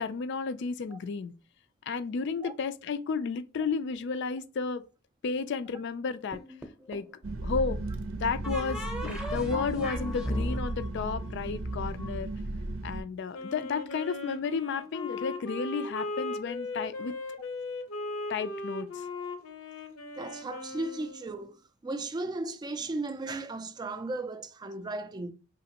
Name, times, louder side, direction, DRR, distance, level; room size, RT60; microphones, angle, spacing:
voice 1, 0.0-1.3 1.9-4.8 5.2-6.4 6.9-7.0 7.4-7.8 8.1-12.3 12.8-17.2 18.3-19.0, left 5 dB, 55° left, 0.4 m, -32 dB
sound 1, 6.3-7.2 8.4-12.1, equal, 5° right, 0.7 m, -36 dB
sound 2, 7.2-13.0, right 2 dB, 75° right, 0.6 m, -35 dB
Wind instrument woodwind instrument, 13.3-21.5, left 2 dB, 90° left, 0.8 m, -38 dB
voice 2, 20.2-21.5 21.8-25.3, right 2 dB, 20° right, 0.3 m, -35 dB
5.1 x 3.1 x 2.8 m
head